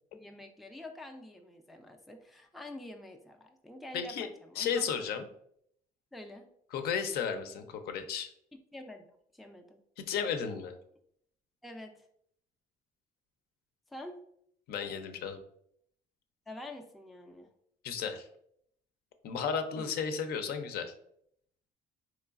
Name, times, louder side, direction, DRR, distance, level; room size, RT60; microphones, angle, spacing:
voice 1, 0.1-5.2 6.1-6.5 8.7-9.0 9.3-9.8 11.6-12.0 13.9-14.2 16.5-17.5 19.8-20.0, left 1 dB, ahead, 3 dB, 0.3 m, -47 dB
voice 2, 3.9-4.3 4.6-5.3 6.7-8.3 10.1-10.7 14.7-15.4 17.8-18.3 19.2-20.9, left 7 dB, 65° left, 7 dB, 0.5 m, -33 dB
3.8 x 3.1 x 2.4 m, 0.70 s
cardioid pair, 110°, 17 cm